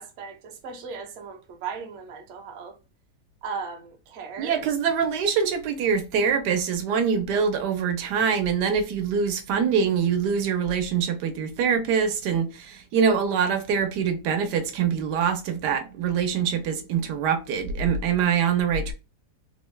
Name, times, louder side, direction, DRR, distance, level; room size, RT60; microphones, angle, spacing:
voice 1, 0.0-2.8 3.4-4.6, right 5 dB, 55° right, 0.9 m, -37 dB
voice 2, 4.4-18.9, right 6 dB, 85° right, 1.2 m, -24 dB
3.3 x 2.2 x 3.1 m
omnidirectional pair, 1.8 m